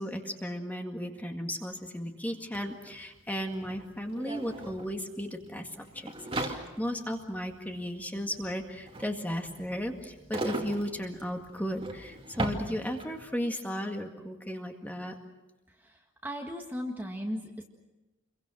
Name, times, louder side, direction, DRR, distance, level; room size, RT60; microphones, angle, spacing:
voice 1, 0.0-15.2, equal, 10° left, 3 dB, 2.0 m, -35 dB
sound 1, 2.5-2.6 2.8-13.3, right 2 dB, 25° right, 2.4 m, -39 dB
voice 2, 15.7-17.6, equal, 10° right, 1 dB, 1.7 m, -37 dB
29.0 x 23.0 x 6.4 m, 1.0 s
head